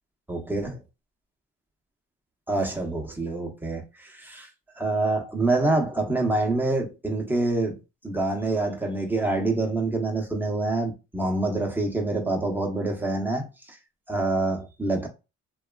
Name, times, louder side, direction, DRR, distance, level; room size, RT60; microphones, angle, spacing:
voice 1, 0.3-0.8 2.5-4.5 4.7-13.8 14.1-15.1, right 2 dB, 5° right, 0.8 m, -26 dB
2.8 x 2.4 x 2.3 m
cardioid pair, 90°, 30 cm